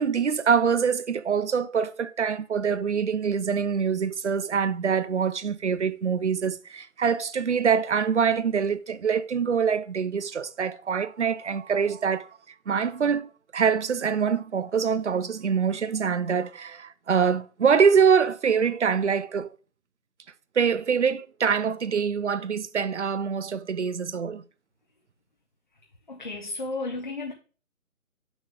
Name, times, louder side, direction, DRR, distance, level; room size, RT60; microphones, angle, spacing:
voice 1, 0.0-12.3 12.7-19.5 20.6-24.4, right 6 dB, 55° right, 0.5 m, -24 dB
voice 2, 26.1-27.3, left 3 dB, 35° left, 0.7 m, -33 dB
6.8 x 6.2 x 3.4 m
figure-of-eight pair, 160°, 44 cm